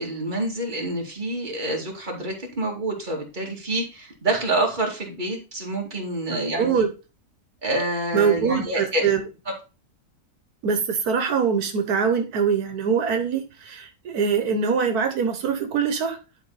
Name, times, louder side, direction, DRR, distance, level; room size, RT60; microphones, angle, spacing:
voice 1, 0.0-6.8 7.6-9.0, right 1 dB, 30° right, 0 dB, 2.4 m, -27 dB
voice 2, 6.3-6.9 8.1-9.2 10.6-16.2, right 6 dB, 85° right, 6 dB, 1.5 m, -23 dB
11.0 x 4.5 x 4.0 m, 0.31 s
omnidirectional pair, 1.6 m